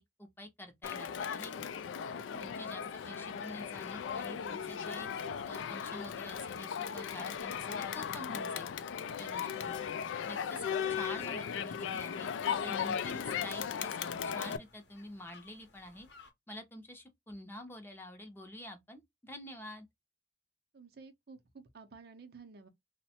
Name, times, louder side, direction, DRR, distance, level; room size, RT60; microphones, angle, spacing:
voice 1, 0.2-1.7 2.4-5.1 5.5-8.7 9.2-9.9 10.3-10.6 10.9-12.3 12.6-14.0 14.3-16.1 16.5-19.9, left 1 dB, 10° left, 0.5 m, -47 dB
Crowd, 0.8-14.6, left 7 dB, 85° left, 0.3 m, -37 dB
sound 1, 3.8-16.3, left 4 dB, 60° left, 0.8 m, -60 dB
voice 2, 9.4-9.8 20.7-22.7, right 4 dB, 55° right, 0.5 m, -53 dB
3.1 x 2.1 x 2.7 m
head